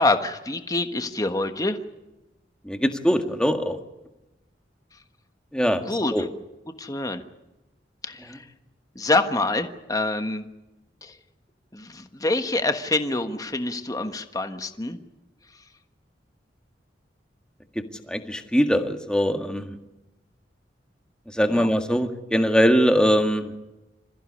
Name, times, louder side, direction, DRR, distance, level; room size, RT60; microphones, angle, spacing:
voice 1, 0.0-1.8 5.9-6.3 6.8-7.2 8.0-8.4 8.9-10.4 11.0-11.1 11.7-15.0 21.5-21.7, left 2 dB, 20° left, 7 dB, 1.3 m, -26 dB
voice 2, 2.6-3.8 5.5-6.3 8.3-8.4 17.8-19.8 21.3-23.5, equal, 5° left, 5 dB, 1.8 m, -22 dB
26.5 x 15.0 x 9.8 m, 1.0 s
head